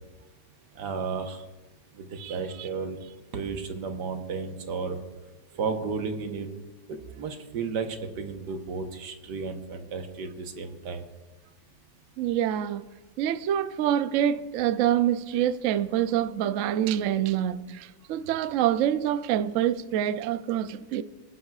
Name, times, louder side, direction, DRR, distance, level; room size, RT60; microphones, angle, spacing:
voice 1, 0.8-1.4 1.9-3.0 3.3-5.0 5.6-6.5 6.9-11.0, right 5 dB, 65° right, 1.7 m, -33 dB
voice 2, 2.2-2.7 12.2-12.9 13.2-21.0, right 10 dB, 90° right, 0.6 m, -26 dB
25.5 x 10.0 x 2.4 m
omnidirectional pair, 2.0 m